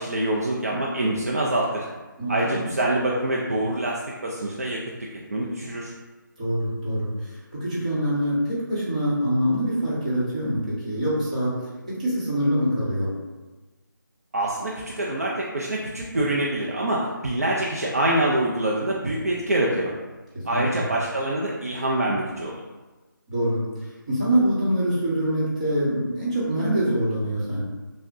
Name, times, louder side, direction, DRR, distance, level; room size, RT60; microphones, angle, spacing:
voice 1, 0.0-1.9 2.3-4.8 5.3-5.9 14.3-19.9 20.5-22.5, right 1 dB, 45° right, -4 dB, 0.5 m, -25 dB
voice 2, 2.2-2.6 6.4-11.5 11.9-13.1 20.5-20.9 23.3-27.6, equal, 20° right, -9 dB, 0.9 m, -25 dB
6.0 x 2.1 x 2.5 m, 1.2 s
figure-of-eight pair, 175°, 11 cm